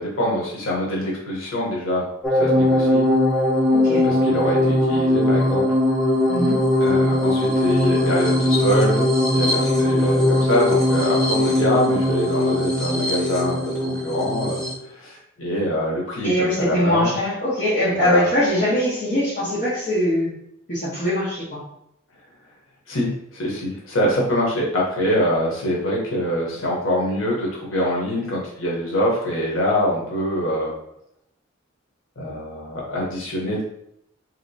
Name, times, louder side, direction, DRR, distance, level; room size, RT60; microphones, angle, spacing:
voice 1, 0.0-2.1 2.3-3.0 4.0-5.6 6.8-9.0 9.3-14.6 14.9-17.1 18.0-18.2 22.9-30.7 32.2-33.6, equal, 90° left, -3 dB, 0.8 m, -24 dB
sound 1, 2.2-14.7, left 1 dB, 5° left, 0.4 m, -20 dB
voice 2, 3.7-4.0 6.3-6.7 16.2-20.3 20.7-21.6, left 1 dB, 40° left, -10 dB, 0.9 m, -22 dB
3.0 x 2.8 x 2.6 m, 0.77 s
head